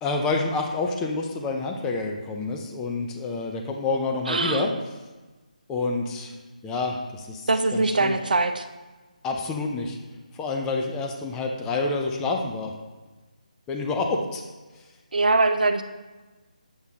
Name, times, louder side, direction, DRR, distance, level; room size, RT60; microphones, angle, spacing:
voice 1, 0.0-4.7 5.7-6.3 6.6-8.1 9.2-10.0 10.3-12.7 13.7-14.4 14.7-14.8, left 3 dB, 10° left, 2 dB, 0.5 m, -28 dB
voice 2, 4.3-4.7 7.5-8.7 15.1-15.8, right 3 dB, 80° right, 7 dB, 0.6 m, -22 dB
8.3 x 5.5 x 3.6 m, 1.2 s
figure-of-eight pair, 160°, 5 cm